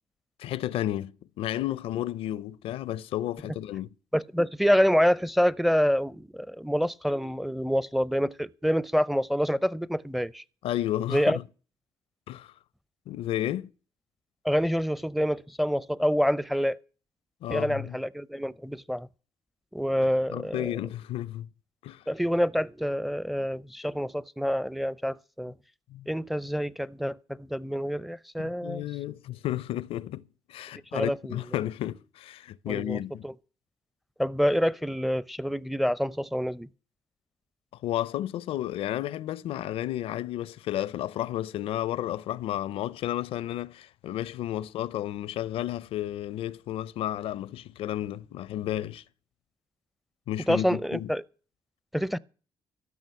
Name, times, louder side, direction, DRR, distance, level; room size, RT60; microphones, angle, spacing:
voice 1, 0.4-3.9 10.6-11.4 12.3-12.5 13.1-13.7 17.4-18.0 20.3-21.5 21.8-22.0 25.9-26.1 28.4-30.2 30.5-33.3 37.8-49.0 50.3-51.1, left 13 dB, 80° left, 0.5 m, -32 dB
voice 2, 4.1-10.4 11.1-11.4 14.4-16.8 17.5-19.1 19.7-20.7 22.1-25.5 26.1-28.9 30.9-31.4 32.7-33.3 34.2-36.7 50.5-51.2 51.9-52.2, equal, ahead, 0.5 m, -27 dB
13.0 x 6.2 x 9.5 m
supercardioid pair, 65°, 10 cm